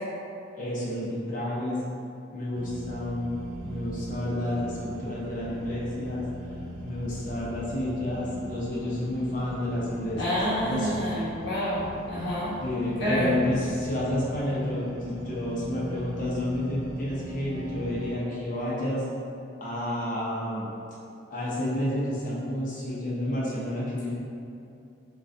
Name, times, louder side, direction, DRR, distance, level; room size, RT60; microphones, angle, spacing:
voice 1, 0.6-1.8 2.3-3.4 3.6-6.2 6.8-10.9 12.6-19.0 19.6-20.7 21.3-24.1, left 1 dB, 40° left, -7 dB, 0.9 m, -30 dB
sound 1, 2.5-18.1, right 1 dB, 90° right, 0.4 m, -41 dB
voice 2, 10.2-12.6 13.0-13.3, equal, 65° left, -11 dB, 1.1 m, -28 dB
5.9 x 2.4 x 2.7 m, 2.6 s
head